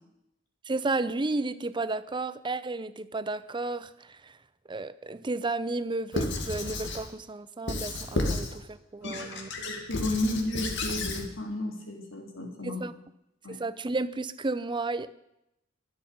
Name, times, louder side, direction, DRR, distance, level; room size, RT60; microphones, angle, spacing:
voice 1, 0.6-4.4 4.7-9.5 12.6-13.0 13.5-15.1, right 3 dB, 25° right, 15 dB, 0.6 m, -32 dB
Squeak / Writing, 6.1-7.1 7.7-8.6 9.0-11.2, left 2 dB, 65° left, 2.3 m, -32 dB
voice 2, 9.6-12.8 13.4-13.6, left 1 dB, 85° left, 1 dB, 3.5 m, -32 dB
23.5 x 8.2 x 5.4 m, 0.83 s
head